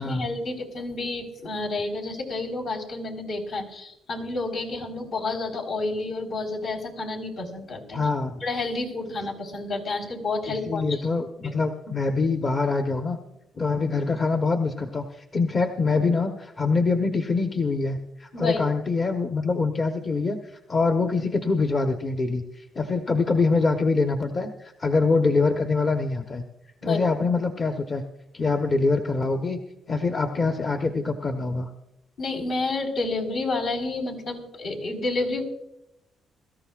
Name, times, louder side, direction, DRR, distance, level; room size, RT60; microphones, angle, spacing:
voice 1, 0.0-8.0 8.4-11.1 11.4-11.6 18.3-18.6 26.8-27.0 32.2-35.4, left 3 dB, 75° left, -1 dB, 4.2 m, -30 dB
voice 2, 7.9-8.4 10.5-13.2 13.6-20.4 20.7-26.4 26.8-28.0 28.3-29.6 29.9-31.7, left 3 dB, 40° left, 4 dB, 1.0 m, -24 dB
23.0 x 13.5 x 2.4 m, 0.86 s
cardioid pair, 90°, 0 cm